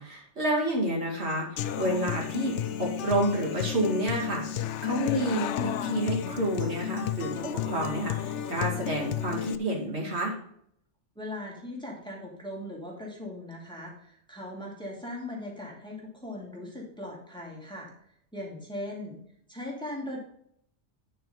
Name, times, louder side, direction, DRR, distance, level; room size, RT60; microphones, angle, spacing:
voice 1, 0.0-10.3, right 1 dB, 65° right, -3 dB, 2.6 m, -29 dB
Human voice / Acoustic guitar, 1.6-9.6, left 9 dB, 80° left, 0.9 m, -32 dB
voice 2, 11.2-17.9 18.3-19.2 19.5-20.2, left 1 dB, 5° left, -3 dB, 2.4 m, -39 dB
9.2 x 4.9 x 5.6 m, 0.68 s
omnidirectional pair, 1.2 m